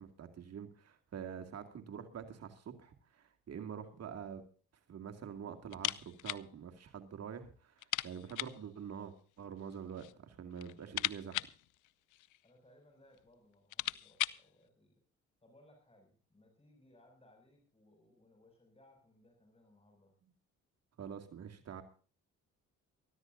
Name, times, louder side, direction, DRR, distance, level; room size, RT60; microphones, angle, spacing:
voice 1, 0.0-4.4 4.9-11.4 21.0-21.8, right 7 dB, 55° right, 6 dB, 2.3 m, -46 dB
sound 1, 5.7-6.5 6.7-6.8 7.2-7.3 7.8-8.7 9.6-10.2 10.5-12.5 13.2-13.3 13.5-14.5, left 17 dB, 85° left, 0.7 m, -39 dB
voice 2, 12.4-15.0 15.4-20.1, left 1 dB, 20° left, 3 dB, 6.4 m, -65 dB
24.5 x 14.0 x 2.6 m, 0.40 s
cardioid pair, 90°, 30 cm